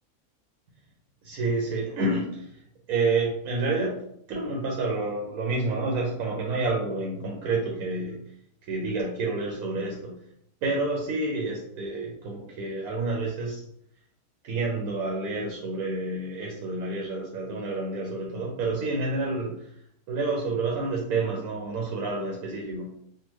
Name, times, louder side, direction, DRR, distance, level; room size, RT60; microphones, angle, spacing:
voice 1, 1.2-2.5 2.9-4.0 4.3-8.2 8.7-10.1 10.6-13.6 14.4-19.7 20.1-22.9, right 3 dB, 85° right, -1 dB, 1.1 m, -29 dB
3.5 x 2.1 x 3.0 m, 0.72 s
omnidirectional pair, 1.5 m